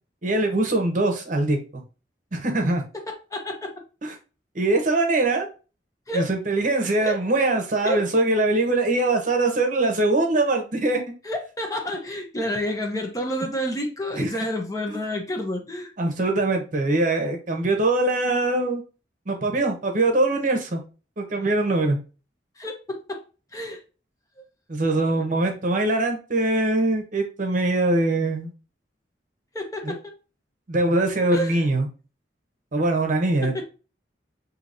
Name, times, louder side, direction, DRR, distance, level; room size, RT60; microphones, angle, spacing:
voice 1, 0.2-1.8 2.3-2.8 4.0-4.1 4.5-5.5 6.1-11.0 14.1-14.3 16.0-18.8 19.3-20.8 21.2-22.0 24.7-28.5 29.8-29.9 30.7-31.9 32.7-33.6, right 2 dB, 45° right, 3 dB, 0.8 m, -22 dB
voice 2, 3.3-3.7 6.1-6.3 7.0-7.2 7.8-8.0 11.2-15.9 22.6-23.2 23.5-23.8 24.9-25.2 29.5-30.0 31.3-31.6 33.4-33.6, equal, 20° left, 3 dB, 0.7 m, -29 dB
5.7 x 2.8 x 2.5 m, 0.34 s
head